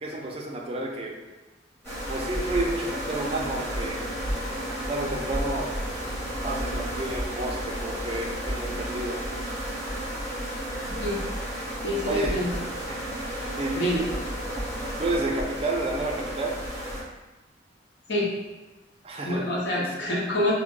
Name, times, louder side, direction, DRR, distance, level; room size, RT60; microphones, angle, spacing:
voice 1, 0.0-1.1 2.1-4.0 4.9-5.7 6.4-9.2 12.1-12.3 12.9-13.0 13.6-13.7 15.0-16.5 19.0-19.4 19.8-19.9, right 2 dB, 30° right, 0 dB, 0.4 m, -30 dB
sound 1, 1.8-17.0, equal, 15° left, 1.5 m, -32 dB
voice 2, 10.9-11.2 11.8-12.6 13.8-14.0 18.1-18.3 19.2-20.5, left 1 dB, 65° left, -4 dB, 0.9 m, -26 dB
3.6 x 2.1 x 3.6 m, 1.1 s
head